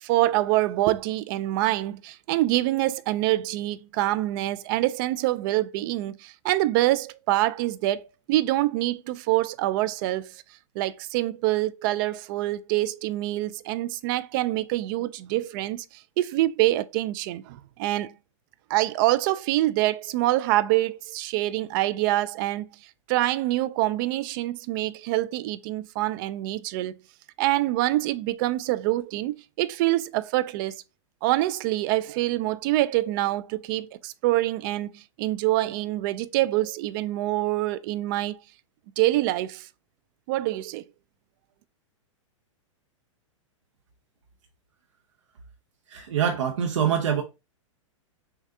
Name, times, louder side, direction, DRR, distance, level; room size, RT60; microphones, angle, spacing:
voice 1, 0.0-8.0 8.3-10.3 10.8-15.9 16.2-18.1 18.7-22.7 23.1-26.9 27.4-30.8 31.2-38.4 39.0-39.7 40.3-40.8, right 16 dB, 40° right, 0.4 m, -25 dB
voice 2, 45.9-47.2, right 8 dB, 70° right, 0.7 m, -24 dB
6.4 x 2.3 x 2.7 m
hypercardioid pair, 120°, 17 cm